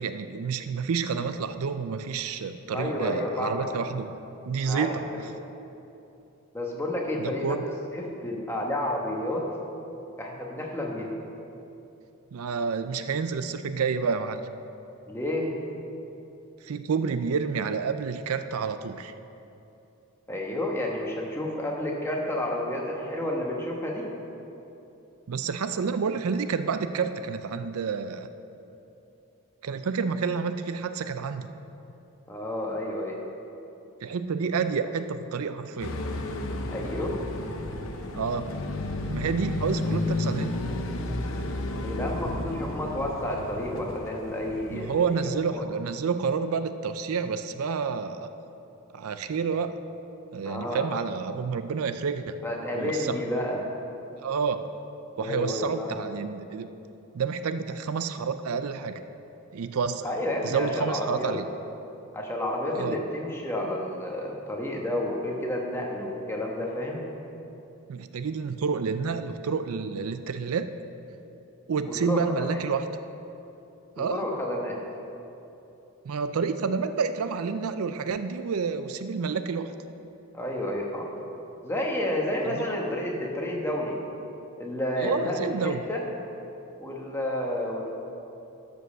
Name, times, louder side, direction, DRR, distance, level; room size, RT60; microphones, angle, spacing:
voice 1, 0.0-4.1 4.4-5.0 7.2-7.6 12.3-14.4 16.6-19.1 25.3-28.3 29.6-31.5 34.0-35.9 38.2-38.6 39.1-40.5 44.7-48.3 48.9-49.7 50.3-52.4 52.7-53.2 54.2-54.7 55.2-56.7 57.1-59.0 59.5-60.1 60.4-61.5 62.7-63.0 67.9-70.7 71.7-72.8 74.0-74.3 76.0-79.7 82.4-82.7 85.0-85.8, right 5 dB, 75° right, 10 dB, 0.4 m, -29 dB
voice 2, 2.7-3.8 4.6-4.9 5.3-5.4 6.5-9.5 10.2-11.1 15.1-15.6 20.3-24.1 32.3-33.2 36.7-37.2 41.8-45.6 50.4-50.9 52.4-53.7 55.2-56.0 60.0-61.4 62.1-67.0 71.9-72.6 74.0-74.8 80.3-81.1 81.6-83.9 84.6-86.0 86.8-87.9, left 1 dB, 10° left, -2 dB, 1.2 m, -30 dB
sound 1, 35.8-45.2, left 2 dB, 70° left, 0.8 m, -32 dB
12.0 x 5.2 x 6.6 m, 2.9 s
head